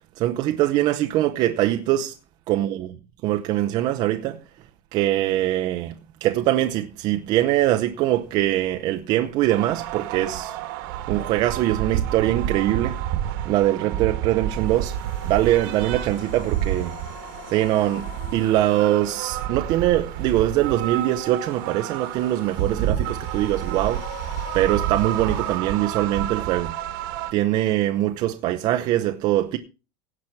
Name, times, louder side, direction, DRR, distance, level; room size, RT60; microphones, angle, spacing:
voice 1, 0.2-2.1 2.5-2.9 3.2-4.4 4.9-5.9 6.2-10.6 11.1-13.0 13.4-15.0 15.2-17.0 17.5-24.0 24.5-26.7 27.3-29.6, right 14 dB, 30° right, 0.7 m, -22 dB
sound 1, 9.5-27.3, right 11 dB, 55° right, 1.4 m, -29 dB
sound 2, 14.5-25.6, left 7 dB, 35° left, 3.7 m, -44 dB
17.0 x 6.1 x 5.9 m
supercardioid pair, 180°, 13 cm